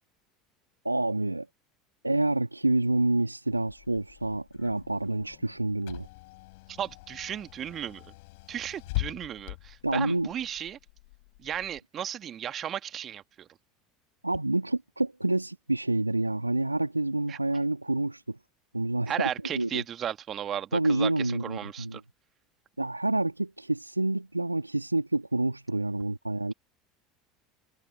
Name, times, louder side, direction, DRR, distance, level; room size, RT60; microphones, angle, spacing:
voice 1, 0.8-1.5 2.0-6.1 9.8-10.3 14.2-18.4 18.7-19.8 20.7-22.0 22.8-26.5, right 2 dB, 90° right, 2.6 m, -28 dB
Car / Engine, 3.5-11.8, left 23 dB, 60° left, 7.3 m, -42 dB
voice 2, 6.7-8.1 8.5-10.8 11.4-13.5 17.3-17.4 19.1-22.0, right 10 dB, 35° right, 2.1 m, -35 dB
figure-of-eight pair, 70°, 0 cm